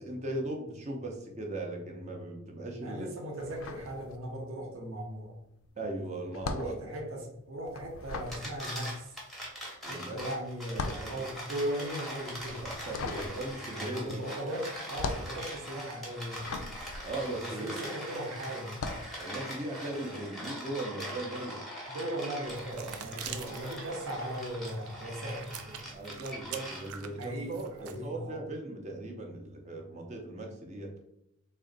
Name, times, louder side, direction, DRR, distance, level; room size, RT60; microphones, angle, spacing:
voice 1, 0.0-3.1 5.7-6.8 9.8-10.2 10.7-11.2 12.5-14.2 17.0-17.9 19.2-21.6 22.7-23.8 25.8-30.9, right 2 dB, 30° right, 1 dB, 0.6 m, -38 dB
voice 2, 2.8-5.4 6.5-9.1 9.8-12.6 13.7-16.6 17.4-19.0 21.9-25.8 27.2-27.5 27.8-28.4, right 1 dB, 60° right, 0 dB, 0.8 m, -38 dB
sound 1, 3.4-4.6 4.9-18.1 18.6-19.2, left 3 dB, 65° left, 0.4 m, -40 dB
sound 2, 8.1-27.2, equal, ahead, 0.8 m, -42 dB
sound 3, 22.4-28.1, right 7 dB, 80° right, 0.4 m, -46 dB
3.7 x 2.2 x 3.8 m, 0.81 s
head